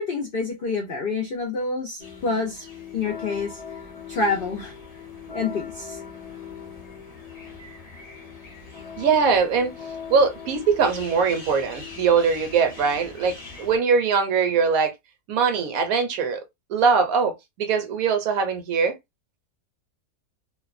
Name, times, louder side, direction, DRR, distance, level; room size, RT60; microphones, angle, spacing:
voice 1, 0.0-2.7 2.9-3.8 4.1-4.7 5.3-6.0, left 4 dB, 75° left, 0.5 m, -27 dB
sound 1, 2.0-13.8, left 6 dB, 35° left, 0.6 m, -40 dB
voice 2, 9.0-9.7 10.1-14.9 15.3-16.4 16.7-19.0, right 5 dB, 70° right, 1.0 m, -21 dB
2.6 x 2.1 x 2.4 m
omnidirectional pair, 1.6 m